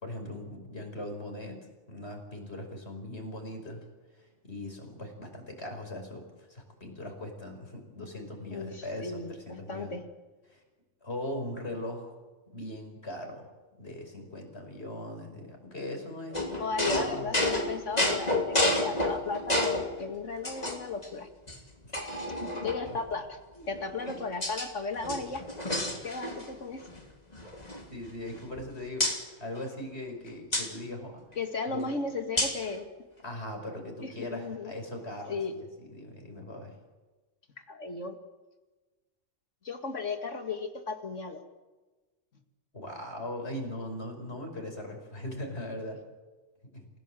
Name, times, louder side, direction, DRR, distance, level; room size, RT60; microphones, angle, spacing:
voice 1, 0.0-3.9 4.2-9.9 10.5-10.6 11.0-12.1 12.5-13.5 13.8-16.4 16.9-17.2 21.8-21.9 22.4-22.7 24.1-24.2 27.9-29.1 29.4-31.2 31.7-32.0 33.2-36.7 42.7-46.0 46.7-46.8, left 1 dB, 60° left, 3 dB, 5.7 m, -40 dB
voice 2, 8.5-10.0 16.6-21.3 22.6-25.4 26.0-26.8 31.4-32.9 34.0-34.7 35.3-35.5 37.7-38.2 39.6-41.4, left 4 dB, 85° left, 6 dB, 2.5 m, -35 dB
sound 1, 16.3-19.9 20.4-21.1 21.5-21.6 21.9-23.0 23.7-24.7 25.0-26.5 26.8-27.0 27.3-28.6 29.0-29.2 30.5-30.7 32.4-32.7, left 1 dB, 35° left, 3.2 m, -30 dB
29.0 x 17.0 x 7.8 m, 1.2 s
omnidirectional pair, 1.2 m